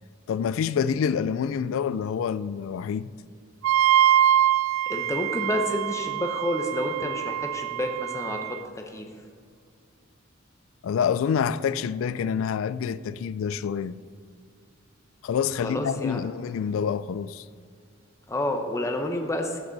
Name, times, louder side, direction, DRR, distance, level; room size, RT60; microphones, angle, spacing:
voice 1, 0.3-3.1 10.8-13.9 15.2-17.4, left 7 dB, 80° left, 0.3 m, -27 dB
Wind instrument woodwind instrument, 3.6-8.6, right 11 dB, 80° right, 0.3 m, -24 dB
voice 2, 4.9-8.6 8.9-9.1 15.6-16.2 18.3-19.6, left 1 dB, 15° left, 0.7 m, -29 dB
15.0 x 6.0 x 4.0 m
head